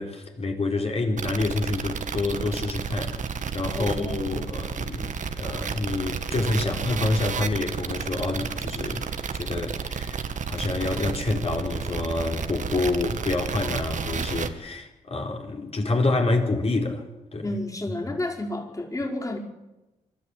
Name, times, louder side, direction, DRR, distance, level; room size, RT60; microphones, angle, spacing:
voice 1, 0.0-3.2 3.5-9.1 9.3-10.2 10.5-17.0 17.3-17.5 18.1-18.2, left 2 dB, 40° left, 4.4 m, -27 dB
sound 1, 1.2-14.5, right 6 dB, 55° right, 1.6 m, -31 dB
voice 2, 3.7-4.4 6.3-6.8 17.4-19.4, left 1 dB, 20° left, 5.2 m, -31 dB
25.0 x 12.5 x 8.4 m
supercardioid pair, 50°, 15 cm